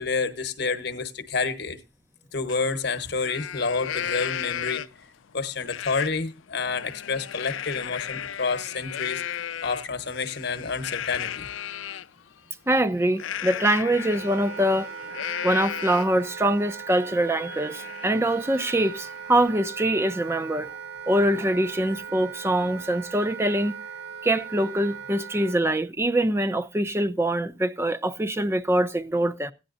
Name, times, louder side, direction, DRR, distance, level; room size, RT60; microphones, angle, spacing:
voice 1, 0.0-1.8 2.3-4.8 5.3-9.2 9.6-11.5, left 4 dB, 55° left, 1.1 m, -29 dB
Livestock farm animals working animals, 2.5-2.6 3.0-5.1 5.7-6.1 6.5-12.1 13.2-16.2 16.7-16.8 17.1-19.5, left 10 dB, 85° left, 0.5 m, -35 dB
voice 2, 12.7-14.9 15.4-20.7 21.1-23.8 24.2-29.5, right 1 dB, 15° right, 0.6 m, -24 dB
Wind instrument woodwind instrument, 13.8-25.6, right 6 dB, 60° right, 1.5 m, -39 dB
16.0 x 10.0 x 2.6 m
head